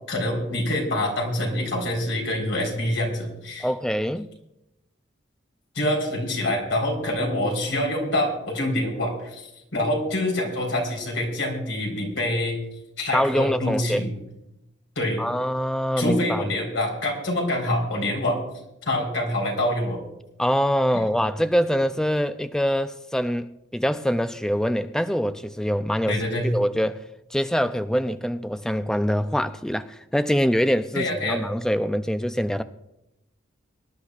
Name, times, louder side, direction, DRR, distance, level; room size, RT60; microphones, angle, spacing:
voice 1, 0.1-3.7 5.7-12.6 13.0-14.2 15.0-15.2 16.0-18.4 18.8-20.0 26.1-26.5 30.9-31.4, left 1 dB, 80° left, 0 dB, 4.0 m, -26 dB
voice 2, 3.6-4.3 13.1-14.0 15.2-16.5 20.4-27.0 27.3-32.6, equal, 5° left, 10 dB, 0.3 m, -24 dB
24.5 x 11.5 x 2.4 m, 0.89 s
head